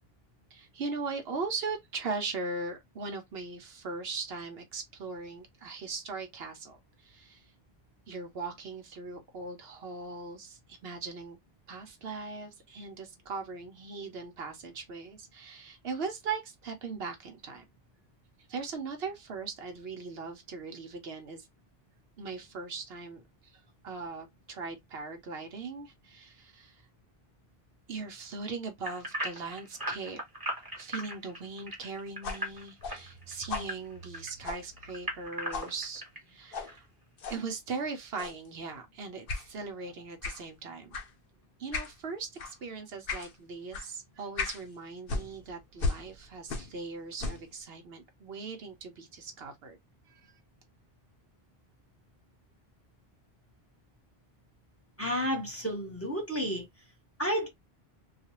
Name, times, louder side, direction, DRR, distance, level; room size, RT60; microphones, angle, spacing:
voice 1, 0.5-7.4 8.1-11.4 11.7-17.7 18.5-21.5 22.2-26.8 27.9-30.2 30.8-36.9 37.3-41.0 41.6-49.8 50.1-50.3, right 4 dB, 70° right, 0.9 m, -39 dB
sound 1, 28.8-34.3 34.8-36.2 36.7-36.8 37.3-37.4, right 1 dB, 20° right, 1.0 m, -37 dB
sound 2, 32.2-35.2 35.5-35.7 36.5-36.7 37.2-37.4 38.2-38.5 39.3-39.5 40.2-40.4 40.9-41.1 41.7-42.0 42.4-42.6 43.1-43.3 43.7-43.9 44.4-44.6 45.1-46.8 47.1-47.5, left 3 dB, 65° left, 0.8 m, -37 dB
voice 2, 55.0-56.6 57.2-57.5, equal, 15° left, 1.0 m, -31 dB
2.4 x 2.3 x 2.9 m
omnidirectional pair, 1.1 m